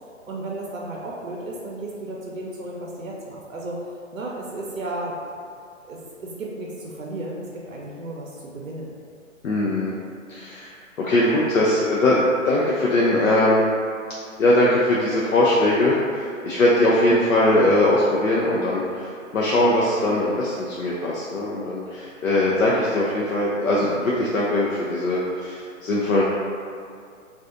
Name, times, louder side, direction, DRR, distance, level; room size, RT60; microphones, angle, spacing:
voice 1, 0.3-3.8 4.1-5.2 5.8-8.9 22.6-22.9, right 2 dB, 85° right, -3 dB, 0.6 m, -34 dB
voice 2, 9.4-9.9 10.3-13.7 14.4-26.2, left 1 dB, 90° left, -6 dB, 0.5 m, -21 dB
2.5 x 2.3 x 2.4 m, 2.2 s
figure-of-eight pair, 125°, 39 cm